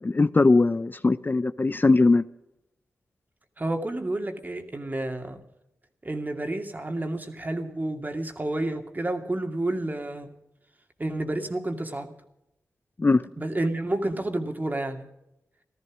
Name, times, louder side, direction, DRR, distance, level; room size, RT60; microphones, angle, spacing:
voice 1, 0.0-2.2 13.0-13.2, left 3 dB, 35° left, 0.6 m, -20 dB
voice 2, 3.6-5.4 6.0-10.3 11.0-12.1 13.4-15.0, right 2 dB, 30° right, 2.4 m, -30 dB
15.5 x 13.5 x 6.2 m
cardioid pair, 60°, 6 cm